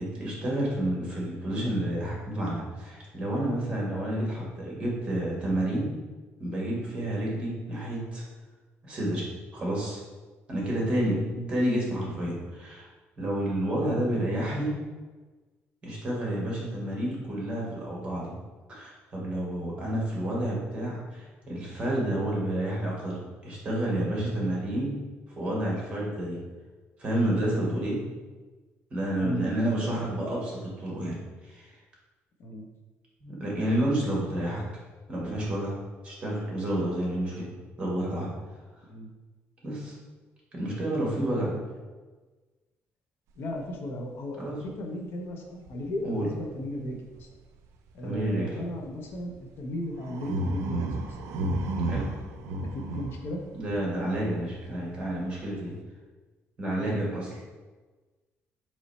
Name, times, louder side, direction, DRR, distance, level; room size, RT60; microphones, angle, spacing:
voice 1, 0.0-5.9 6.4-8.2 8.8-9.3 9.5-10.0 10.5-11.2 11.5-12.9 13.2-14.8 15.8-18.3 18.7-25.0 25.4-26.4 27.0-28.0 28.9-31.2 31.4-31.7 33.2-34.6 35.1-35.8 36.0-37.5 37.8-38.3 39.6-39.9 40.5-41.5 44.4-44.6 46.0-46.3 48.0-48.5 51.9-52.1 53.5-55.7 56.6-57.4, right 1 dB, 25° right, -4 dB, 1.3 m, -30 dB
voice 2, 10.8-11.5 14.0-14.1 29.2-30.0 32.4-32.7 38.9-39.1 41.3-41.6 43.4-47.3 47.9-51.2 52.5-53.4 56.7-57.0, left 1 dB, 50° left, 2 dB, 0.6 m, -36 dB
sound 1, 44.6-44.7 45.7-45.8 47.1-47.2 48.1-48.3 49.1-49.3 50.0-54.4 54.7-55.5, right 2 dB, 90° right, 0.4 m, -33 dB
3.9 x 3.1 x 4.1 m, 1.3 s
cardioid pair, 170°, 5 cm